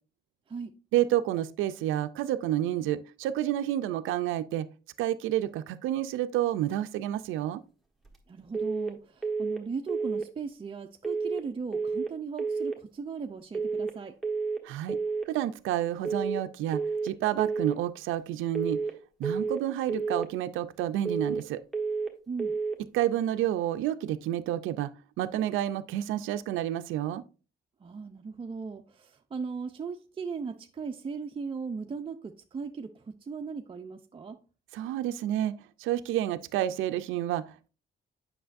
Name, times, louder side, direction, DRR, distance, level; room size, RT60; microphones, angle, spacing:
voice 1, 0.9-4.7 5.0-7.6 14.6-15.0 15.3-18.8 19.2-21.6 22.9-24.9 25.2-27.2 34.7-35.5 35.8-37.7, right 12 dB, 90° right, 0.4 m, -29 dB
voice 2, 8.3-14.1 22.3-22.5 27.8-34.4, right 5 dB, 25° right, 0.5 m, -38 dB
sound 1, 8.5-8.9 9.2-9.6 9.9-10.3 11.0-11.4 11.7-12.1 12.4-12.8 13.5-13.9 14.2-14.6 14.9-15.3 16.0-16.4 16.7-17.1 17.4-17.8 18.5-18.9 19.2-19.6 19.9-20.3 21.1-21.5 21.7-22.1 22.4-22.8, right 4 dB, ahead, 1.4 m, -30 dB
7.8 x 5.9 x 2.5 m
cardioid pair, 90°, 20 cm